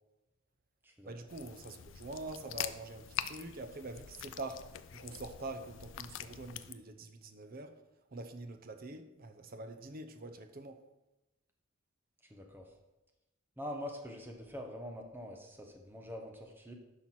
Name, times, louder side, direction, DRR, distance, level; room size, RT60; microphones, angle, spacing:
voice 1, 1.1-7.8 8.1-10.8, right 2 dB, 45° right, 0.7 m, -45 dB
sound 1, 1.3-6.7, left 10 dB, 65° left, 0.4 m, -44 dB
voice 2, 12.3-12.7 13.6-16.7, left 1 dB, 10° right, 1.0 m, -44 dB
10.5 x 5.7 x 4.3 m
head